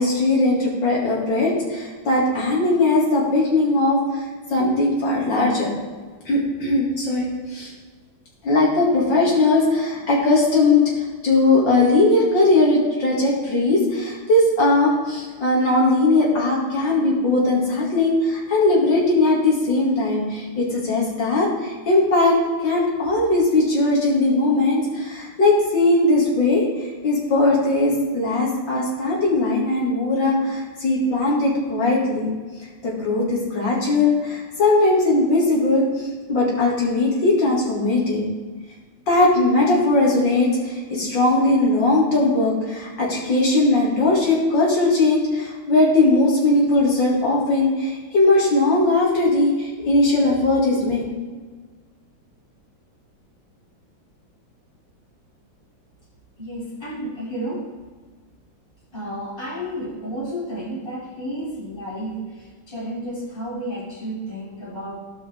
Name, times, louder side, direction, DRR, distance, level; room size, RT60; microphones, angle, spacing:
voice 1, 0.0-4.2 4.5-5.7 6.3-7.7 8.4-10.8 11.2-22.4 22.6-26.6 27.0-32.3 32.8-38.2 39.1-51.1, left 2 dB, 70° left, -3 dB, 3.0 m, -19 dB
voice 2, 56.4-57.7 58.9-65.0, equal, 15° left, -7 dB, 3.0 m, -31 dB
16.5 x 5.5 x 3.5 m, 1.4 s
omnidirectional pair, 2.1 m